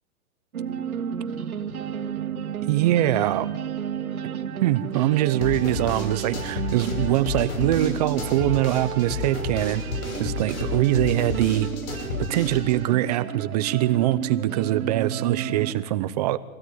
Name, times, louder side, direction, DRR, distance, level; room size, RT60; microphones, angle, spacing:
sound 1, 0.5-15.7, right 8 dB, 90° right, 2.1 m, -32 dB
voice 1, 2.7-3.5 4.6-9.8 10.2-11.7 12.2-16.4, right 14 dB, 30° right, 14 dB, 0.7 m, -23 dB
sound 2, 5.4-12.7, left 4 dB, 75° left, 5.8 m, -31 dB
24.5 x 17.0 x 9.5 m, 1.3 s
hypercardioid pair, 150°, 42 cm